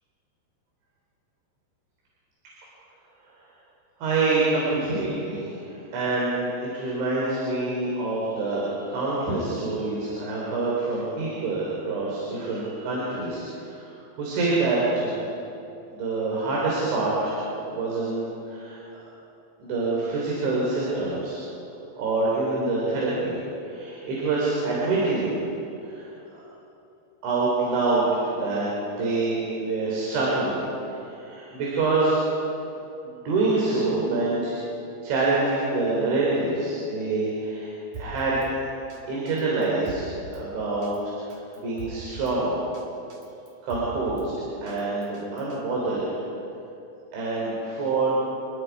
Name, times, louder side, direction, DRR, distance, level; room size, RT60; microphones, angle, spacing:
voice 1, 4.0-13.9 14.2-15.2 15.9-18.8 19.6-21.4 22.0-23.3 23.6-25.3 25.8-26.1 27.2-30.6 30.9-32.2 33.0-34.6 35.0-37.7 38.0-38.4 39.1-40.9 41.3-42.6 43.6-44.3 44.6-46.0 47.1-48.1, right 3 dB, 90° right, -5 dB, 6.2 m, -26 dB
Drum kit, 37.9-38.5 38.9-39.0 39.3-40.4 40.8-41.0 41.3-42.4 42.7-42.8 43.1-44.3 44.7-45.6, right 3 dB, 45° right, 4.0 m, -41 dB
29.0 x 21.0 x 4.8 m, 2.8 s
omnidirectional pair, 5.1 m